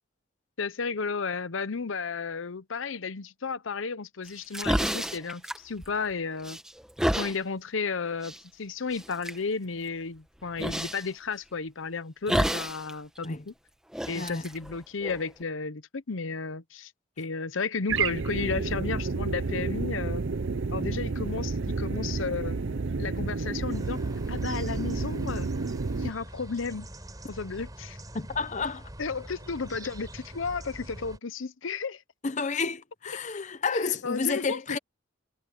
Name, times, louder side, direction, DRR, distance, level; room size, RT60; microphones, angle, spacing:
voice 1, 0.6-6.6 7.1-13.5 14.1-16.9 17.2-20.2 20.7-22.6 23.0-24.0 24.3-25.5 26.0-26.9 27.3-28.0 29.0-32.0 34.0-34.8, left 4 dB, 75° left, 0.8 m, -33 dB
sound 1, 4.3-6.1 6.4-7.4 8.2-8.4 8.9-9.4 10.6-11.0 12.3-12.9 13.2-13.3 13.9-15.4, equal, 5° right, 1.4 m, -30 dB
sound 2, 17.9-26.1, right 4 dB, 65° right, 0.7 m, -30 dB
sound 3, 23.7-31.2, right 1 dB, 20° right, 4.4 m, -44 dB
voice 2, 28.1-28.9 32.2-34.8, left 4 dB, 35° left, 0.7 m, -30 dB
head